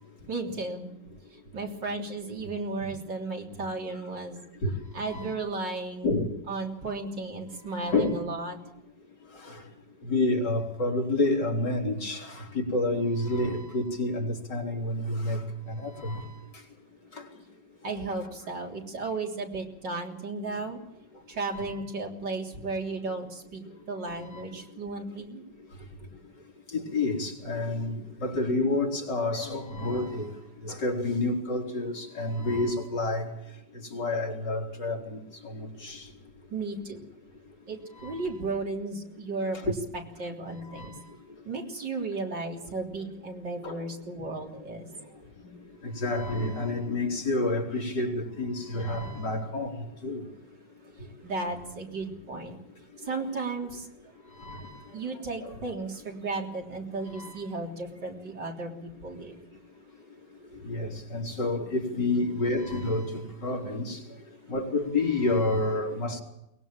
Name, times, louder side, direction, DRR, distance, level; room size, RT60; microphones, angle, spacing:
voice 1, 0.2-0.9 1.3-4.4 4.9-6.2 6.5-8.6 17.8-20.8 21.3-25.4 36.5-37.0 37.7-39.7 40.2-40.9 41.5-44.9 51.2-52.6 53.0-53.9 54.9-59.4 60.6-60.7, right 3 dB, 85° right, 1 dB, 4.2 m, -34 dB
voice 2, 5.0-5.3 6.0-6.3 7.8-8.2 9.5-9.6 10.1-15.4 15.7-16.3 17.9-18.0 21.5-21.8 24.1-24.4 26.7-30.3 30.6-33.3 33.9-35.2 35.4-36.0 38.0-38.3 40.6-41.0 43.6-43.8 45.8-50.2 53.1-53.2 54.3-54.8 55.4-55.5 57.1-57.4 60.6-64.0 64.5-66.2, left 2 dB, 80° left, 0 dB, 4.7 m, -29 dB
22.5 x 20.5 x 7.5 m, 0.84 s
omnidirectional pair, 1.9 m